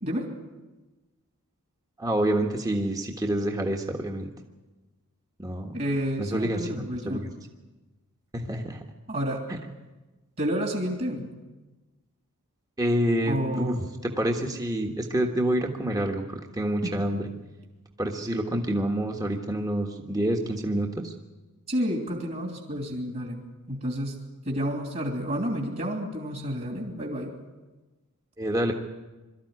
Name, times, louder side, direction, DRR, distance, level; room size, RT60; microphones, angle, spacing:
voice 1, 2.0-4.3 5.4-5.7 6.2-7.3 8.3-8.8 9.5-9.6 12.8-13.7 14.0-17.3 18.0-21.1 28.4-28.7, right 1 dB, 15° right, 2 dB, 1.5 m, -27 dB
voice 2, 5.7-7.3 9.1-9.4 10.4-11.3 13.2-13.8 16.8-17.1 21.7-23.4 23.7-24.2 24.4-27.3, equal, 40° right, 1 dB, 3.0 m, -30 dB
23.0 x 13.5 x 9.7 m, 1.2 s
head